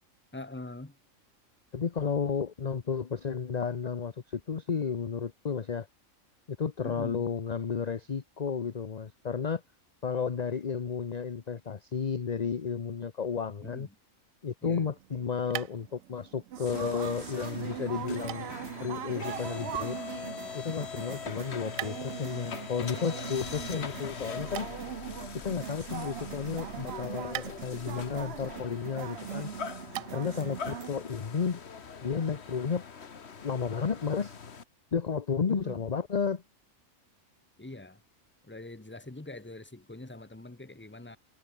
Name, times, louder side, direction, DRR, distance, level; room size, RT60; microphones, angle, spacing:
voice 1, 0.3-1.0 6.8-7.3 13.6-13.9 14.6-14.9 35.5-35.8 37.6-38.0 38.4-41.2, left 2 dB, 10° left, 1.3 m, -44 dB
voice 2, 1.7-5.9 6.5-9.6 10.0-13.9 14.4-20.0 20.5-24.7 25.4-29.5 30.1-31.6 32.0-32.8 33.4-34.3 34.9-36.4, left 6 dB, 35° left, 0.9 m, -32 dB
sound 1, 14.8-30.5, right 14 dB, 80° right, 1.0 m, -47 dB
sound 2, 16.5-30.9, right 10 dB, 60° right, 0.8 m, -41 dB
sound 3, 16.7-34.6, left 6 dB, 55° left, 1.6 m, -42 dB
omnidirectional pair, 1.4 m